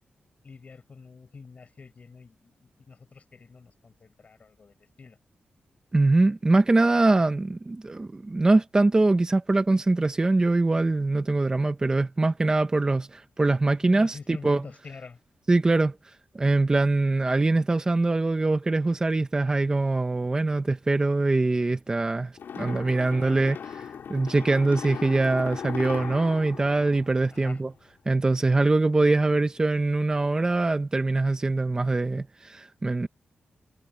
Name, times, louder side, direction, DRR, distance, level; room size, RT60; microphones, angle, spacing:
voice 1, 0.4-5.2 13.9-15.2 22.9-23.7 27.3-27.6, left 4 dB, 40° left, 6.8 m, -46 dB
voice 2, 5.9-14.6 15.5-23.6 24.1-27.7 28.1-33.1, right 2 dB, 20° right, 0.9 m, -23 dB
sound 1, 22.4-27.7, left 7 dB, 90° left, 3.9 m, -38 dB
wide cardioid pair, 150°, 4 cm